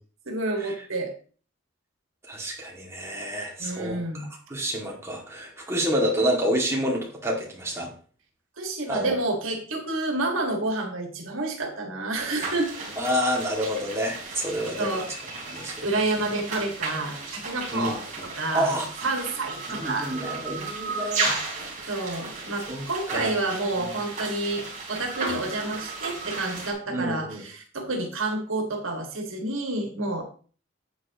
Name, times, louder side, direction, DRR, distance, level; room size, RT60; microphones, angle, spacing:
voice 1, 0.3-1.1 3.6-4.3 8.6-12.7 14.8-15.1 15.8-18.7 19.0-20.1 21.9-30.3, right 2 dB, 85° right, 2 dB, 1.9 m, -29 dB
voice 2, 2.3-7.9 8.9-9.2 13.0-15.0 15.5-16.0 17.7-18.0 18.5-18.9 19.7-21.4 22.7-23.3 23.8-23.9 26.9-27.4, equal, 15° right, -1 dB, 2.2 m, -28 dB
sound 1, 12.1-26.7, right 3 dB, 40° right, 3.3 m, -34 dB
9.3 x 8.2 x 3.0 m, 0.41 s
head